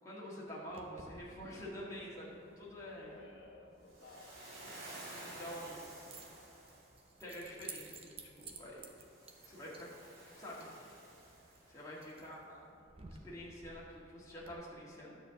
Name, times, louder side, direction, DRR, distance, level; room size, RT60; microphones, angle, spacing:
voice 1, 0.0-3.2 5.2-5.9 7.2-8.8 9.4-9.9 10.4-10.7 11.7-15.1, equal, 15° left, -7 dB, 1.9 m, -47 dB
Keys jangling, 0.7-14.5, right 4 dB, 30° right, 0.6 m, -56 dB
voice 2, 3.1-4.4 5.6-6.3 12.1-12.5, left 3 dB, 70° left, -2 dB, 1.2 m, -58 dB
Waves surf, 3.9-7.1 8.9-12.0, right 1 dB, 50° right, 2.2 m, -52 dB
10.5 x 4.5 x 7.0 m, 2.5 s
head